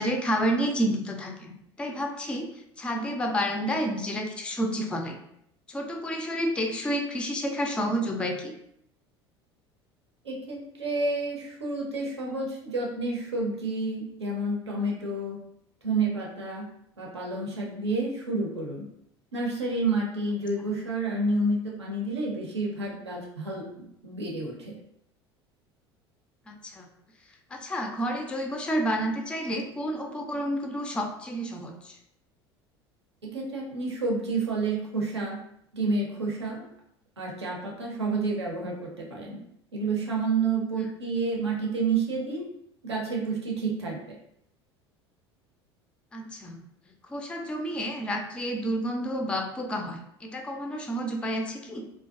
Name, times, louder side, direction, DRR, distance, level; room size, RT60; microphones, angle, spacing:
voice 1, 0.0-5.2 5.7-8.6 26.5-26.9 27.3-32.0 40.7-40.9 46.1-46.6 47.0-51.9, equal, 5° left, 3 dB, 0.3 m, -30 dB
voice 2, 10.2-15.4 15.8-16.7 17.0-18.9 19.3-24.8 33.2-35.4 35.7-36.7 37.2-39.4 39.7-42.5 42.8-44.0, right 3 dB, 80° right, -2 dB, 0.6 m, -29 dB
2.4 x 2.2 x 2.4 m, 0.74 s
figure-of-eight pair, 70°, 14 cm